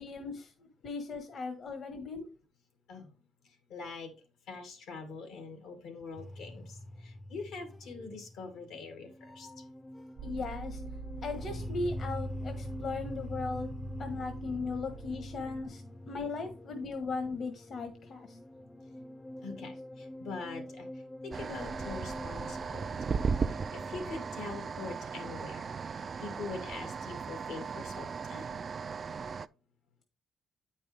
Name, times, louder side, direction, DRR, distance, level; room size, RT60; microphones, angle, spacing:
voice 1, 0.0-2.3 10.2-10.8 11.2-13.7 14.0-18.4 19.6-19.7, left 3 dB, 55° left, 1.1 m, -37 dB
voice 2, 3.4-4.1 4.5-9.6 18.8-18.9 19.4-23.0 23.4-28.6, left 4 dB, 90° left, 2.0 m, -44 dB
sound 1, 6.2-25.0, left 1 dB, 25° left, 0.5 m, -45 dB
sound 2, 10.2-15.7, right 4 dB, 70° right, 0.9 m, -45 dB
sound 3, 21.3-29.5, right 5 dB, 45° right, 0.3 m, -36 dB
8.7 x 5.3 x 3.4 m
cardioid pair, 90°, 0 cm